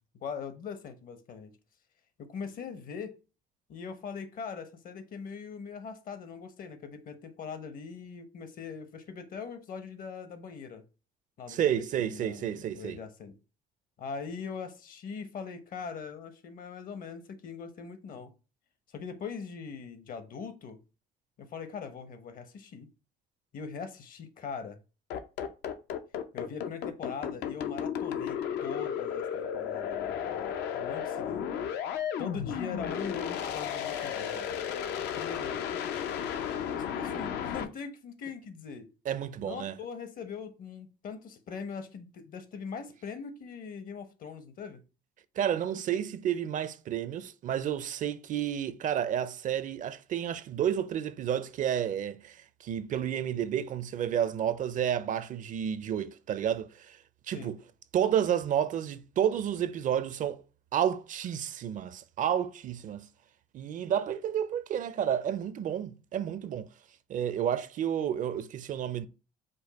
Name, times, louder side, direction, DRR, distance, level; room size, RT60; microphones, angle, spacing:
voice 1, 0.2-1.5 2.2-3.1 3.7-10.8 11.4-13.4 14.0-18.3 18.9-20.8 21.4-22.9 23.5-24.8 26.3-31.4 32.2-34.6 35.0-35.7 36.9-38.9 39.4-44.8 57.3-57.5, left 6 dB, 55° left, 0.9 m, -41 dB
voice 2, 11.5-13.0 39.1-39.7 45.4-57.0 57.3-57.6 57.9-60.4 60.7-63.1 63.5-66.7 67.1-69.1, right 9 dB, 50° right, 0.4 m, -31 dB
sound 1, 25.1-37.6, left 8 dB, 80° left, 0.6 m, -33 dB
5.1 x 2.2 x 4.0 m
cardioid pair, 110°, 17 cm